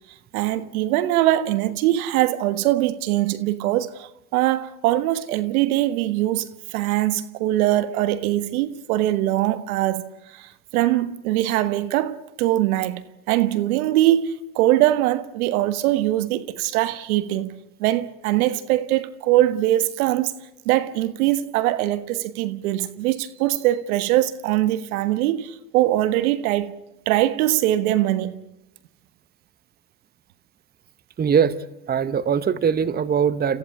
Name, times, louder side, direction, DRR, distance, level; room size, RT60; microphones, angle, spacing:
voice 1, 0.3-13.0 13.3-17.5 17.8-20.3 20.6-26.8 27.0-28.3, right 14 dB, 70° right, 1.5 m, -22 dB
voice 2, 31.2-31.6 31.9-33.6, right 7 dB, 20° right, 1.0 m, -21 dB
29.0 x 15.0 x 8.6 m
hypercardioid pair, 90°, 44 cm